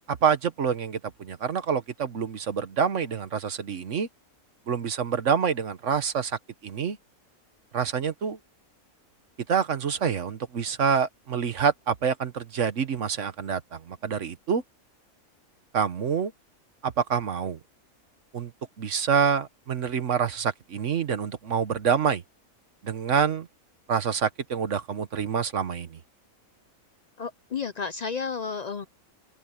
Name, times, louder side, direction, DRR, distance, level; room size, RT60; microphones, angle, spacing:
voice 1, 0.1-4.1 4.7-7.0 7.7-8.4 9.5-14.6 15.7-16.3 16.8-17.6 18.3-18.5 18.8-22.2 22.8-23.5 23.9-26.0, right 7 dB, 60° right, 1.3 m, -27 dB
voice 2, 27.2-28.9, left 5 dB, 65° left, 0.4 m, -32 dB
omnidirectional pair, 1.5 m